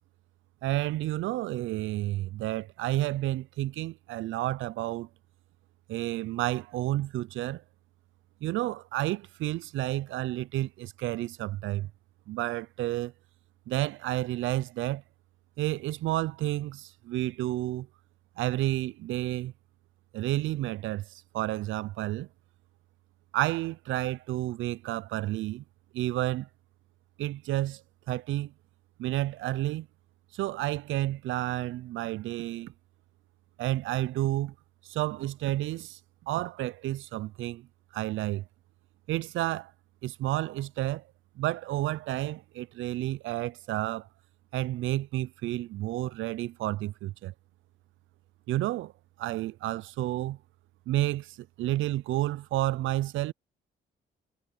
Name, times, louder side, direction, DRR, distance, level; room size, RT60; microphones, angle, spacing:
voice 1, 0.6-5.1 5.9-7.6 8.4-11.9 12.3-13.1 13.7-15.0 15.6-17.9 18.4-19.5 20.1-22.3 23.3-25.6 25.9-26.5 27.2-28.5 29.0-29.9 30.3-32.7 33.6-34.5 34.8-36.0 36.3-37.7 37.9-38.5 39.1-39.7 40.0-41.0 41.4-44.1 44.5-47.3 48.5-48.9 49.2-50.4 50.9-53.3, right 15 dB, 80° right, 0.5 m, -31 dB
cardioid pair, 90°, 20 cm